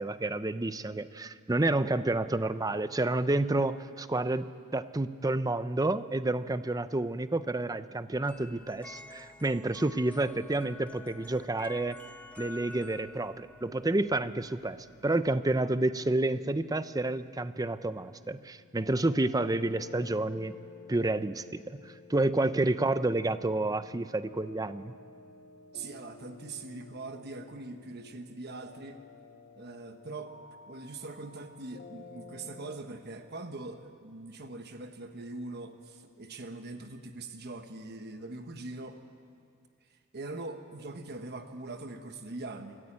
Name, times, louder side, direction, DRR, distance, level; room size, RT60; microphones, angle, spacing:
voice 1, 0.0-4.5 4.7-12.0 12.4-14.8 15.0-20.5 20.9-24.9, right 2 dB, 15° right, 13 dB, 0.6 m, -29 dB
sound 1, 8.1-15.3, left 2 dB, 5° left, 0.9 m, -50 dB
sound 2, 16.1-32.8, left 3 dB, 45° left, 1.3 m, -53 dB
voice 2, 25.7-29.0 29.5-30.3 30.7-39.0 39.9-42.8, right 2 dB, 50° right, 7 dB, 1.1 m, -42 dB
25.5 x 14.0 x 8.8 m, 2.4 s
head